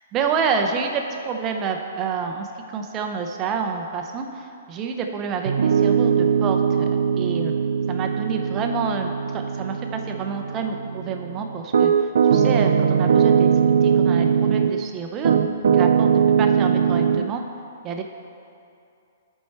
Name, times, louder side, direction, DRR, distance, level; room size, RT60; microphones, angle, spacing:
voice 1, 0.1-2.5 2.7-7.5 7.9-11.9 12.3-13.5 13.8-15.3 15.7-17.4 17.8-18.0, right 5 dB, 20° right, 4 dB, 0.5 m, -28 dB
Piano, 5.5-14.8 15.2-17.2, right 7 dB, 70° right, 0.3 m, -20 dB
11.0 x 4.5 x 4.3 m, 2.5 s
hypercardioid pair, 165°, 0 cm